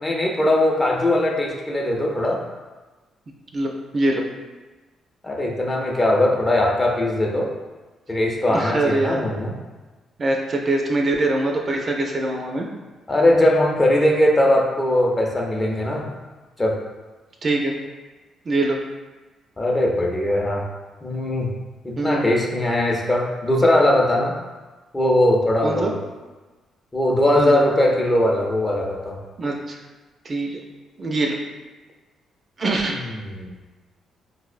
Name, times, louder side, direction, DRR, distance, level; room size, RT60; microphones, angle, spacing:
voice 1, 0.0-2.4 5.2-7.5 8.1-9.5 13.1-16.1 16.6-16.8 19.6-20.7 21.0-21.5 21.8-24.3 24.9-25.9 26.9-29.2 32.9-33.5, left 1 dB, 20° left, 0 dB, 0.5 m, -20 dB
voice 2, 3.5-4.2 8.5-9.2 10.2-12.7 17.4-17.8 18.5-18.8 22.0-22.2 25.6-25.9 27.4-27.6 29.4-29.8 30.2-30.6 31.0-31.4 32.6-33.0, right 2 dB, 40° right, 1 dB, 0.4 m, -23 dB
4.1 x 2.0 x 2.4 m, 1.2 s
cardioid pair, 90°, 0 cm